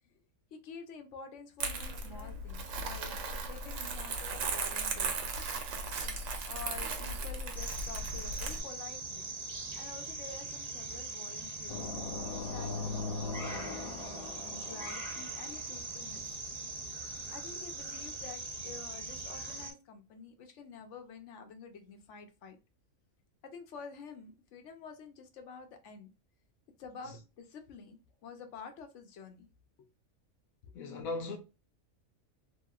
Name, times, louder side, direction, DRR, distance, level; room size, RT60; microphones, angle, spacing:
voice 1, 0.5-3.2 3.5-5.1 6.4-9.3 9.7-11.8 12.3-16.2 17.3-22.6 23.4-26.1 26.8-29.5 29.8-29.9 30.6-30.7, left 5 dB, 65° left, 0.9 m, -49 dB
Crumpling crinkling, 1.6-8.6, right 3 dB, 75° right, 1.0 m, -37 dB
sound 1, 7.5-19.7, right 3 dB, 35° right, 0.8 m, -41 dB
sound 2, 11.7-15.5, left 3 dB, 50° left, 0.4 m, -39 dB
voice 2, 30.7-31.4, left 3 dB, 85° left, 1.2 m, -38 dB
2.9 x 2.8 x 2.3 m
omnidirectional pair, 1.4 m